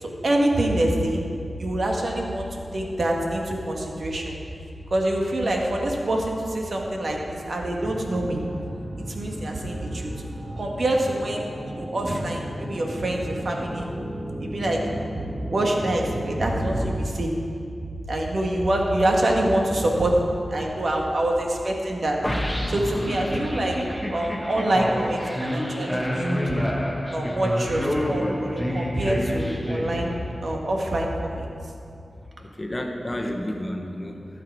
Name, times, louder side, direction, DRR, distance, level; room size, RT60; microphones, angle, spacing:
voice 1, 0.0-1.2 1.6-4.4 4.9-8.4 9.1-10.1 10.6-13.9 14.4-14.8 15.5-17.3 18.1-20.1 20.5-22.2 22.7-23.8 24.1-26.4 27.1-30.1 30.4-31.5, right 1 dB, 65° right, 0 dB, 1.6 m, -25 dB
sound 1, 7.8-17.0, equal, 15° right, 2.1 m, -34 dB
sound 2, 22.2-30.5, equal, 5° left, 1.4 m, -28 dB
voice 2, 32.4-34.3, left 1 dB, 25° left, 3 dB, 1.3 m, -31 dB
16.0 x 6.7 x 4.8 m, 2.5 s
cardioid pair, 50°, 0 cm